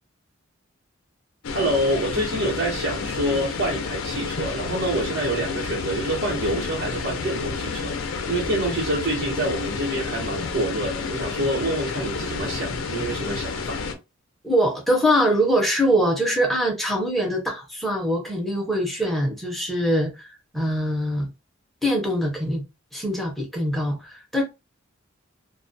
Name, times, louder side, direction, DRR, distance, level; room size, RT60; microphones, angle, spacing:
sound 1, 1.4-14.0, left 5 dB, 75° left, 0.5 m, -30 dB
voice 1, 1.5-13.8, right 1 dB, 70° right, 0.9 m, -27 dB
voice 2, 14.4-20.3 20.5-21.3 21.8-22.6 22.9-24.4, equal, ahead, 0.6 m, -23 dB
2.2 x 2.1 x 2.5 m
head